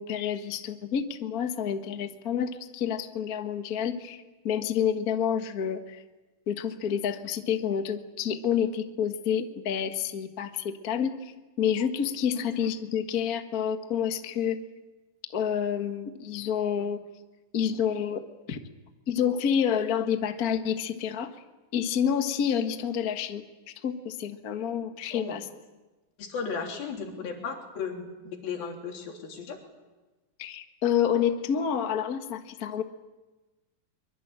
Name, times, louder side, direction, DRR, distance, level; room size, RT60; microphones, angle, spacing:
voice 1, 0.0-6.0 6.5-11.3 11.6-14.6 15.3-17.0 17.5-18.2 18.5-18.6 19.1-21.3 21.7-23.4 23.8-25.4 30.4-32.8, left 8 dB, 60° left, 7 dB, 0.9 m, -28 dB
voice 2, 26.2-29.6, left 5 dB, 80° left, 2 dB, 5.1 m, -35 dB
24.0 x 23.5 x 8.9 m, 1.2 s
omnidirectional pair, 4.2 m